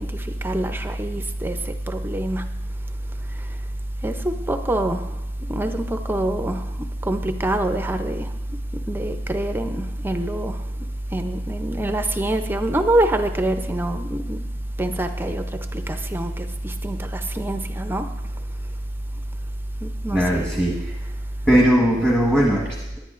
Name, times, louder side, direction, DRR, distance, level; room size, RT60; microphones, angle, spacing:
voice 1, 0.0-2.5 3.2-3.6 4.0-5.2 5.5-8.4 8.7-14.5 14.8-18.1 19.8-20.6 21.0-21.1, right 1 dB, 10° right, 0.5 m, -25 dB
voice 2, 20.1-20.9 21.5-23.0, equal, 5° left, 1.2 m, -19 dB
18.5 x 10.5 x 2.5 m
head